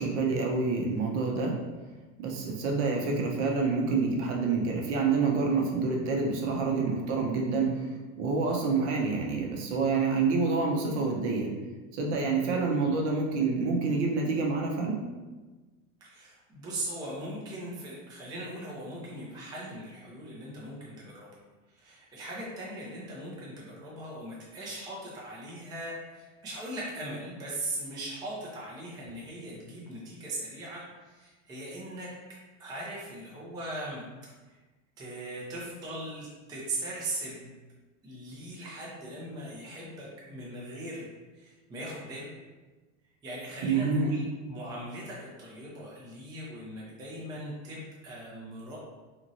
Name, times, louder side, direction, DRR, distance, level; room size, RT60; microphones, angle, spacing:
voice 1, 0.0-1.5 2.2-7.9 8.2-11.5 11.9-15.0 43.6-44.1, right 4 dB, 60° right, 0 dB, 0.7 m, -27 dB
voice 2, 16.0-21.3 21.7-32.1 32.6-34.0 34.5-34.6 35.0-37.5 38.0-42.3 43.2-48.8, right 1 dB, 10° right, -5 dB, 0.4 m, -39 dB
3.0 x 2.6 x 2.5 m, 1.2 s
supercardioid pair, 125°, 40 cm